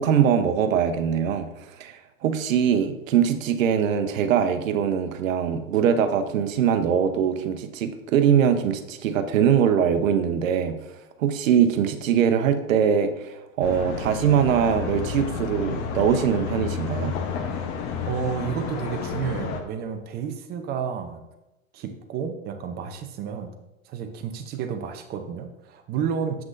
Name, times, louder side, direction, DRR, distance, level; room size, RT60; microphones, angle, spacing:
voice 1, 0.0-1.5 1.8-10.7 11.2-17.1, right 8 dB, 75° right, 8 dB, 0.9 m, -22 dB
sound 1, 13.6-19.6, left 6 dB, 35° left, 0.9 m, -31 dB
voice 2, 18.1-21.2 21.7-23.5 23.9-26.4, right 7 dB, 25° right, 6 dB, 0.6 m, -31 dB
7.8 x 6.0 x 2.5 m, 0.96 s
hypercardioid pair, 130°, 40 cm